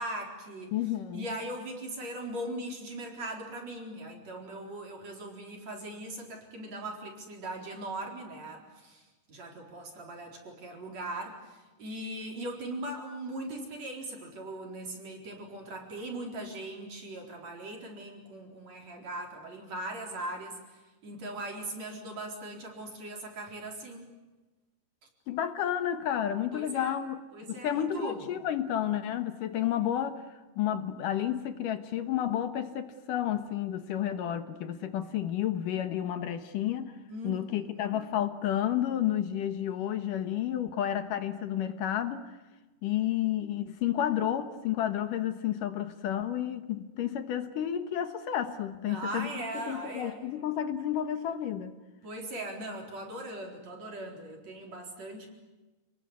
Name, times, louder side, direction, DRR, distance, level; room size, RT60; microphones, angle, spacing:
voice 1, 0.0-0.7 1.1-24.1 26.5-27.0 27.3-28.2 37.1-38.0 48.9-50.2 52.0-55.3, right 1 dB, 45° right, 5.2 m, -40 dB
voice 2, 0.7-1.3 25.3-27.2 27.5-37.0 37.2-42.4 42.8-51.7, left 10 dB, 65° left, 2.5 m, -31 dB
29.0 x 20.5 x 9.7 m
omnidirectional pair, 4.6 m